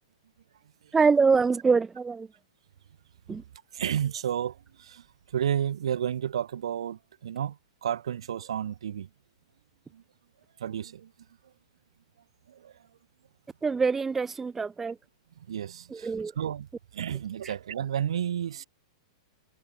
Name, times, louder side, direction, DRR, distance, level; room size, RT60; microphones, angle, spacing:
voice 1, 0.9-2.3 3.3-3.4 13.6-14.9 15.9-16.3, right 5 dB, 10° right, 0.5 m, -24 dB
voice 2, 3.7-5.0 5.3-9.1 9.9-10.0 10.6-11.1 12.5-12.7 15.5-16.7 16.9-18.6, right 9 dB, 85° right, 3.6 m, -31 dB
supercardioid pair, 160°, 3 cm